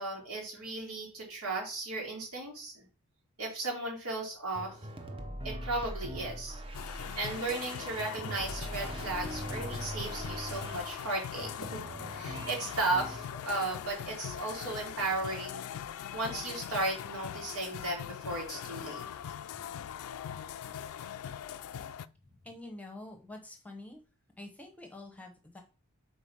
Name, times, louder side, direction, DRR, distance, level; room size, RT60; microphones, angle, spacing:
voice 1, 0.0-2.9 3.4-4.8 5.4-6.6 7.1-11.8 12.1-15.7 16.1-19.0, right 2 dB, 80° right, -1 dB, 2.7 m, -35 dB
sound 1, 4.5-13.7 14.0-14.8, right 1 dB, 25° right, 0.7 m, -42 dB
sound 2, 6.7-22.1, left 9 dB, 75° left, 0.3 m, -41 dB
voice 2, 22.4-24.0 24.4-25.6, left 2 dB, 5° left, 3 dB, 0.9 m, -47 dB
5.0 x 3.9 x 5.5 m, 0.34 s
head